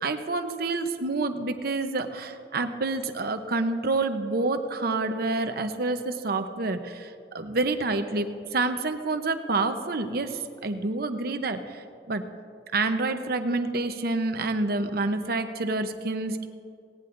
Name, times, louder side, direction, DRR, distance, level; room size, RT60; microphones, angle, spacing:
voice 1, 0.0-12.2 12.7-16.5, right 3 dB, 60° right, 8 dB, 0.8 m, -28 dB
18.0 x 17.5 x 2.6 m, 2.5 s
head